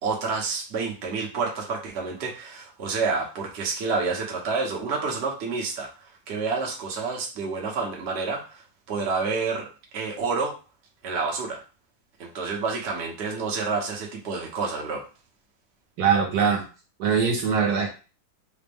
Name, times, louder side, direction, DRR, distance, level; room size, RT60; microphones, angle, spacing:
voice 1, 0.0-10.5 11.0-11.6 12.2-15.0, right 4 dB, 45° right, -1 dB, 1.0 m, -29 dB
voice 2, 16.0-16.6 17.0-18.0, right 6 dB, 65° right, 0 dB, 1.3 m, -22 dB
5.0 x 2.1 x 3.4 m, 0.34 s
omnidirectional pair, 2.0 m